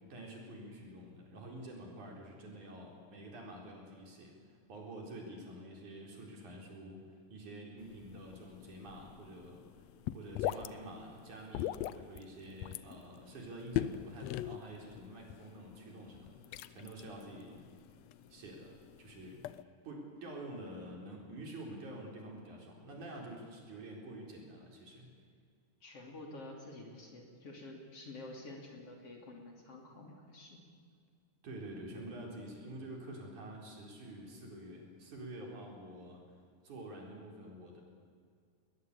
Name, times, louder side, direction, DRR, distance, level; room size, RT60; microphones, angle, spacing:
voice 1, 0.1-7.0 7.3-9.6 10.1-17.6 18.3-19.4 19.8-25.1 31.4-36.2 36.6-37.8, right 1 dB, 65° right, 0 dB, 5.6 m, -48 dB
sound 1, 7.8-19.6, left 12 dB, 85° left, 1.4 m, -42 dB
voice 2, 25.8-30.6, left 2 dB, 45° left, 1 dB, 3.8 m, -49 dB
21.0 x 20.5 x 8.5 m, 2.2 s
omnidirectional pair, 3.8 m